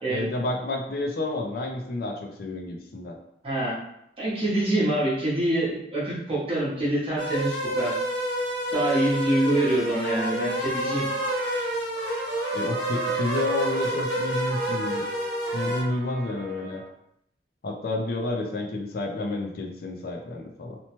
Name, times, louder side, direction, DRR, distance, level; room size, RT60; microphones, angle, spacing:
voice 1, 0.1-3.2 12.5-15.0 15.5-16.8 17.6-20.8, left 2 dB, 55° left, 2 dB, 0.4 m, -30 dB
voice 2, 3.4-3.7 4.2-7.9 8.7-11.1, right 1 dB, 30° right, -7 dB, 0.8 m, -25 dB
sound 1, 7.2-15.8, equal, 80° left, 1.4 m, -29 dB
Trumpet, 9.6-16.9, right 3 dB, 50° right, 0.3 m, -37 dB
2.9 x 2.1 x 2.9 m, 0.76 s
head